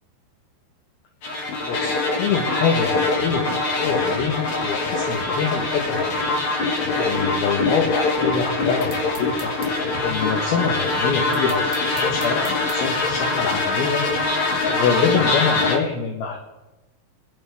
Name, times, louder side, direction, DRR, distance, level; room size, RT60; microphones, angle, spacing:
sound 1, 1.2-15.8, left 3 dB, 50° left, 2.8 m, -23 dB
voice 1, 1.6-6.2 7.0-9.5 10.0-14.0 14.7-16.4, left 6 dB, 70° left, 1 dB, 2.9 m, -25 dB
sound 2, 8.8-9.8 11.3-12.8, right 5 dB, 55° right, 3.5 m, -41 dB
25.5 x 11.0 x 3.5 m, 1.0 s
omnidirectional pair, 4.9 m